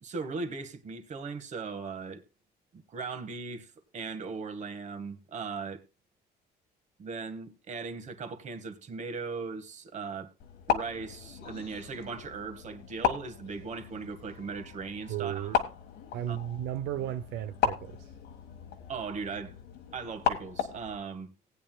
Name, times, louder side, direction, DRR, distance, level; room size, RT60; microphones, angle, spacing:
voice 1, 0.0-2.2 2.7-5.8 7.0-10.3 10.7-15.5 16.3-16.4 18.9-19.5 19.9-21.3, right 4 dB, 45° right, 1.6 m, -38 dB
sound 1, 10.4-21.0, left 9 dB, 85° left, 1.6 m, -35 dB
voice 2, 15.1-15.6 16.1-18.1, right 11 dB, 85° right, 0.6 m, -34 dB
18.5 x 9.1 x 2.3 m
cardioid pair, 110°, 17 cm